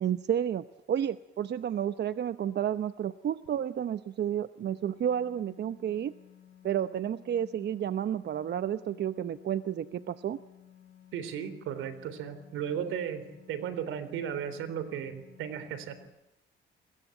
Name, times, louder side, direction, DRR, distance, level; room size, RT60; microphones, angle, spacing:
voice 1, 0.0-6.1 6.6-10.4, right 9 dB, 60° right, 12 dB, 0.9 m, -31 dB
sound 1, 4.6-16.1, left 10 dB, 65° left, 7.0 m, -56 dB
voice 2, 11.1-16.0, right 8 dB, 90° right, 13 dB, 3.8 m, -35 dB
28.5 x 21.5 x 9.2 m, 0.91 s
cardioid pair, 90°, 20 cm